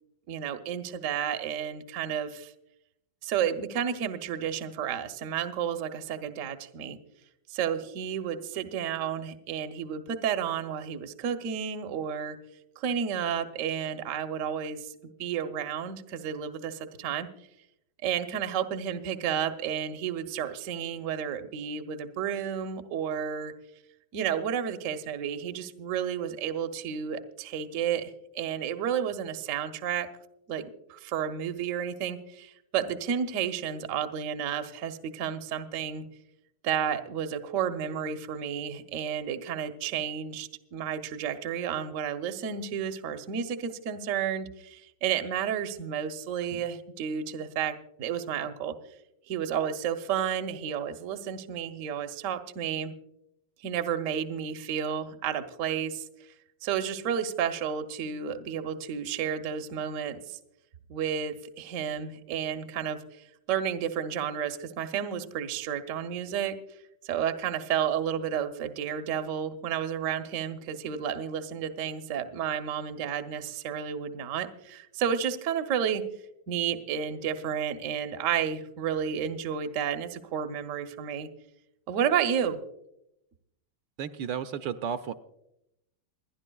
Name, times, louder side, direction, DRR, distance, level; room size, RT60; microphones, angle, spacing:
voice 1, 0.3-2.5 3.2-7.0 7.5-12.4 12.8-14.9 15.2-17.3 18.0-23.5 24.1-30.1 30.5-36.0 36.6-48.7 49.3-52.9 53.6-56.1 56.6-60.4 60.9-63.0 63.5-66.5 67.0-76.0 76.5-81.3 81.9-82.6, right 8 dB, 55° right, 7 dB, 0.9 m, -31 dB
voice 2, 84.0-85.1, right 8 dB, 75° right, 8 dB, 1.2 m, -33 dB
28.5 x 10.5 x 2.3 m, 0.81 s
omnidirectional pair, 2.2 m